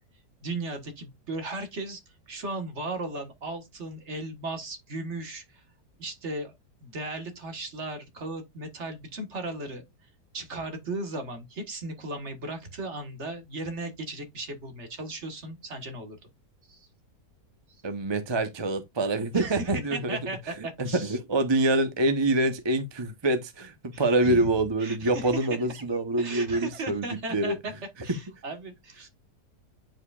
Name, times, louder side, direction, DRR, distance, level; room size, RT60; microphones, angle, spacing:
voice 1, 0.4-5.6 6.0-6.5 6.8-16.2 16.7-16.9 17.7-17.8 19.3-21.2 23.9-24.5 24.8-25.8 26.2-29.1, right 2 dB, 40° right, 1.7 m, -36 dB
voice 2, 17.8-20.2 20.8-27.0 27.3-27.6, right 2 dB, 25° right, 0.6 m, -26 dB
9.0 x 4.9 x 2.4 m
omnidirectional pair, 1.9 m